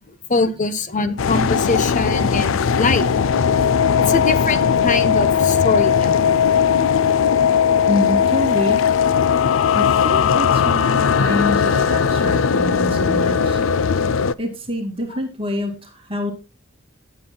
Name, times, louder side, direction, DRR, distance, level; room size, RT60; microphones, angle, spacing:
voice 1, 0.3-3.1 4.0-6.3, left 3 dB, 40° left, 13 dB, 0.9 m, -22 dB
sound 1, 1.2-14.3, left 7 dB, 70° left, 0.5 m, -18 dB
voice 2, 7.9-8.8 9.7-13.6 14.4-16.3, left 1 dB, 30° right, 3 dB, 2.4 m, -26 dB
17.5 x 7.6 x 2.2 m, 0.28 s
head